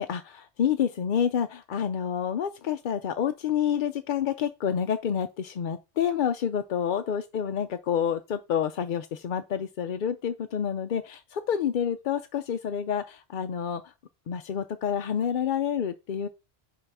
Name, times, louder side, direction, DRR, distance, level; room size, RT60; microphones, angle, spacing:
voice 1, 0.0-13.9 14.3-16.3, left 8 dB, 55° left, 0.6 m, -28 dB
5.5 x 4.8 x 6.0 m
omnidirectional pair, 1.2 m